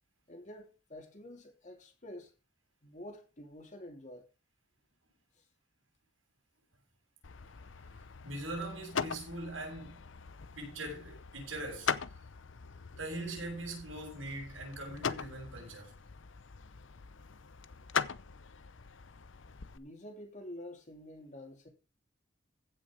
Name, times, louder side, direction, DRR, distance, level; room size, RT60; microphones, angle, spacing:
voice 1, 0.3-2.3 2.8-4.2 19.4-21.7, left 1 dB, 40° left, 3.1 m, -48 dB
sound 1, 7.2-19.8, left 6 dB, 75° left, 0.7 m, -41 dB
voice 2, 8.2-10.1 10.5-11.9 13.0-15.9, right 2 dB, 85° right, 7.3 m, -41 dB
15.5 x 6.4 x 5.1 m
head